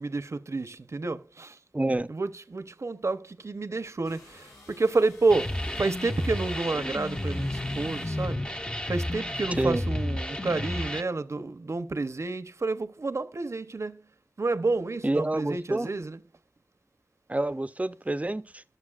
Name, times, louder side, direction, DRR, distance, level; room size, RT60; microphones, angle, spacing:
voice 1, 0.0-1.6 2.1-14.1 14.4-16.2, right 3 dB, 65° right, 0.9 m, -30 dB
voice 2, 1.7-2.1 9.6-9.8 15.0-15.9 17.3-18.6, right 2 dB, 25° right, 0.6 m, -28 dB
sound 1, 4.1-8.5, left 2 dB, 85° left, 6.1 m, -53 dB
sound 2, 5.3-11.0, left 1 dB, 20° left, 0.8 m, -31 dB
21.0 x 7.1 x 2.5 m
wide cardioid pair, 55°, 5 cm